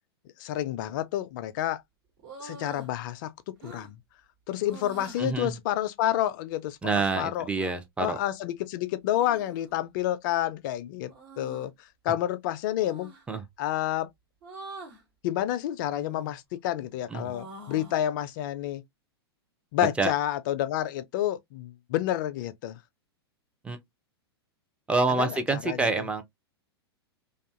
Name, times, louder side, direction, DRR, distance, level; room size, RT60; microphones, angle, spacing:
voice 1, 0.4-1.8 2.4-4.0 4.5-7.5 8.0-11.7 12.0-13.1 13.6-14.1 15.2-18.8 19.7-22.8 25.1-25.9, left 12 dB, 50° left, 0.4 m, -29 dB
sound 1, 2.2-2.9 3.6-3.9 4.6-5.2 7.5-7.7 9.1-9.8 11.1-11.7 12.8-13.2 14.4-15.0 15.9-16.4 16.8-18.1, right 1 dB, 55° right, 1.2 m, -45 dB
voice 2, 5.2-5.5 6.8-8.2 13.3-13.4 17.1-17.2 20.0-20.1 23.6-23.8 24.9-26.2, right 3 dB, 10° right, 0.5 m, -27 dB
2.5 x 2.3 x 2.4 m
hypercardioid pair, 105°, 14 cm